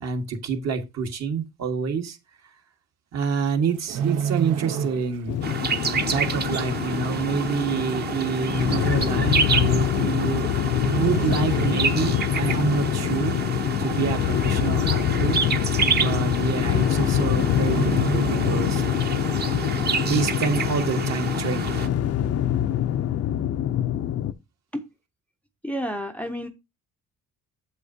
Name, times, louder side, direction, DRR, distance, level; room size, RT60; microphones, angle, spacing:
voice 1, 0.0-2.2 3.1-5.4 5.8-10.5 10.9-15.7 16.0-18.8 20.1-21.9, right 5 dB, 55° right, 1.5 m, -27 dB
sound 1, 3.6-5.4 5.6-5.9 6.5-6.6 7.5-7.6 7.8-7.9 8.7-9.0 10.1-10.5 10.7-12.3 12.6-12.9 13.4-13.9 14.2-14.3 14.6-14.7 15.1-15.2 16.1-16.2 16.5-16.8 17.1-17.2 17.6-19.2 19.6-19.7, right 7 dB, 75° right, 1.0 m, -30 dB
sound 2, 5.3-24.3, left 11 dB, 50° left, 0.5 m, -25 dB
sound 3, 5.4-21.9, right 5 dB, 30° right, 0.8 m, -29 dB
voice 2, 25.6-26.5, equal, 5° left, 0.5 m, -30 dB
8.1 x 7.8 x 2.7 m
cardioid pair, 165°, 32 cm